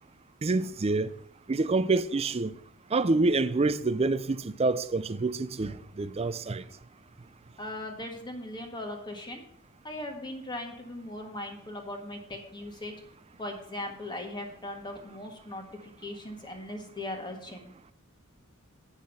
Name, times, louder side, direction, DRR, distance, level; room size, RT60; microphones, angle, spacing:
voice 1, 0.4-1.1 1.5-2.5 2.9-6.6, right 3 dB, 30° right, 0.5 m, -27 dB
voice 2, 7.6-9.4 9.8-13.0 13.4-17.7, left 1 dB, 20° left, 1.7 m, -39 dB
8.8 x 6.4 x 5.6 m
head